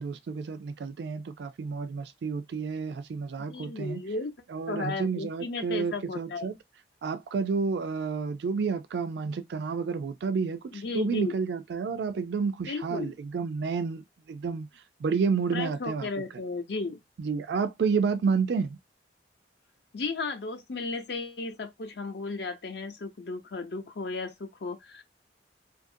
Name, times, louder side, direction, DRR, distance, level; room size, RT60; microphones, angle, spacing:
voice 1, 0.0-4.0 4.5-6.5 7.0-14.7 15.0-16.1 17.2-18.8, right 5 dB, 65° right, 0.3 m, -30 dB
voice 2, 3.5-4.3 4.7-6.5 10.7-11.4 12.7-13.1 15.5-17.0 19.9-25.0, left 3 dB, 65° left, 0.6 m, -34 dB
2.7 x 2.5 x 2.5 m
head